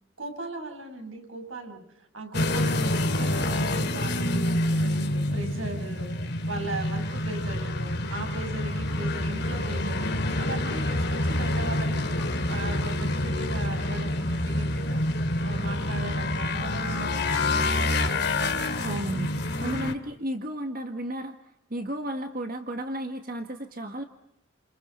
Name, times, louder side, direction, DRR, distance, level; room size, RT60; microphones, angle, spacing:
voice 1, 0.2-18.1, right 2 dB, 80° right, 3 dB, 6.5 m, -38 dB
sound 1, 2.3-19.9, left 1 dB, 55° left, 2.4 m, -27 dB
Bass guitar, 10.0-13.7, left 1 dB, 75° left, 3.9 m, -39 dB
voice 2, 18.8-19.3 19.6-21.3 21.7-24.0, right 1 dB, 45° right, 6 dB, 1.7 m, -33 dB
29.5 x 28.5 x 5.6 m, 0.78 s
head